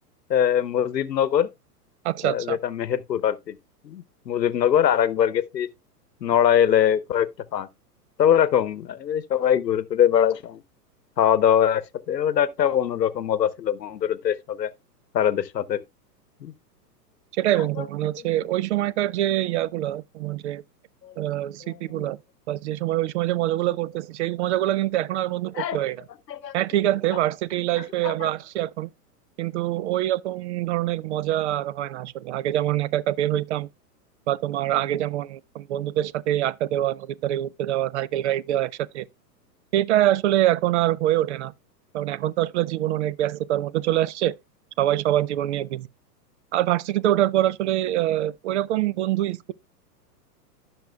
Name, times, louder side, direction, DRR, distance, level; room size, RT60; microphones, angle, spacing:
voice 1, 0.3-1.5 2.2-3.6 3.8-5.7 6.2-7.3 7.5-7.7 8.2-10.6 11.2-11.8 12.1-14.7 15.1-15.8 16.4-16.5 21.0-21.1 21.6-22.0 25.5-25.8 26.3-26.5 28.0-28.3, left 9 dB, 90° left, 0.9 m, -22 dB
voice 2, 2.0-2.6 17.3-20.6 21.2-22.2 22.5-26.0 26.5-28.9 29.4-33.7 34.3-39.1 39.7-41.5 41.9-44.3 44.8-45.9 46.5-49.5, right 13 dB, 45° right, 0.4 m, -25 dB
15.0 x 6.1 x 2.2 m
hypercardioid pair, 115°, 49 cm